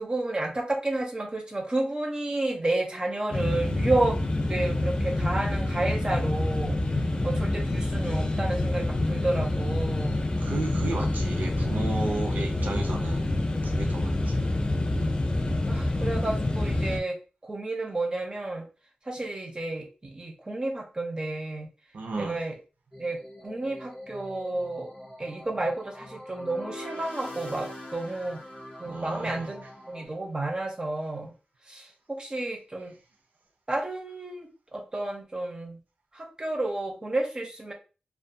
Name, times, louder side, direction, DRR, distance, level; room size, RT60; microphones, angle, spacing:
voice 1, 0.0-4.2 4.5-6.8 7.2-10.3 15.7-17.2 17.4-18.7 19.1-21.7 22.2-22.5 23.0-24.9 25.2-28.4 28.8-31.3 31.7-32.9 33.7-35.8 36.1-37.7, right 2 dB, 30° right, 2 dB, 0.5 m, -31 dB
sound 1, 3.3-17.0, left 2 dB, 35° left, 0.3 m, -27 dB
voice 2, 10.4-13.3 13.6-14.4 21.9-22.4 28.8-29.7, right 3 dB, 90° right, 1 dB, 0.5 m, -34 dB
sound 2, 22.9-30.1, left 1 dB, ahead, 0.8 m, -45 dB
sound 3, 26.4-29.6, equal, 90° left, 0.9 m, -43 dB
2.3 x 2.2 x 2.6 m, 0.33 s
wide cardioid pair, 85°, 3 cm